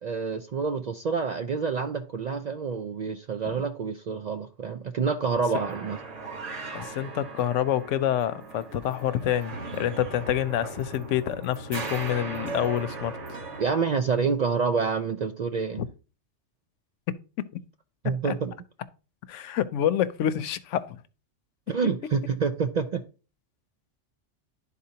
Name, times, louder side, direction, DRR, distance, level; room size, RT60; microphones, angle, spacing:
voice 1, 0.0-6.0 13.6-15.8 18.0-18.5 21.7-23.0, right 5 dB, 65° right, 0.4 m, -27 dB
sound 1, 5.5-13.7, right 3 dB, 80° right, 1.6 m, -38 dB
voice 2, 6.7-13.2 15.8-15.9 18.2-18.3 19.3-21.0, left 11 dB, 85° left, 0.9 m, -27 dB
11.5 x 4.2 x 2.8 m
omnidirectional pair, 1.2 m